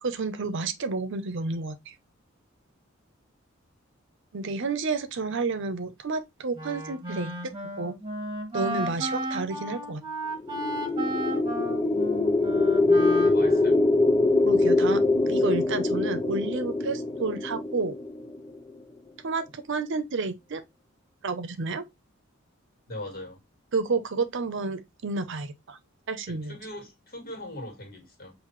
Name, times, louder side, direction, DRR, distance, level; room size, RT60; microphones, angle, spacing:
voice 1, 0.0-1.9 4.3-7.3 7.8-7.9 8.5-10.0 14.4-15.0 15.3-18.0 19.2-20.6 21.2-21.9 23.7-25.8 26.1-26.6, right 4 dB, 65° right, 0.7 m, -30 dB
Wind instrument woodwind instrument, 6.5-13.9, right 1 dB, 25° right, 1.2 m, -34 dB
sound 1, 10.4-18.6, left 2 dB, 20° left, 0.4 m, -23 dB
voice 2, 13.2-13.8 22.9-23.4 26.3-28.3, left 1 dB, 50° left, 1.9 m, -40 dB
5.7 x 2.7 x 3.1 m
head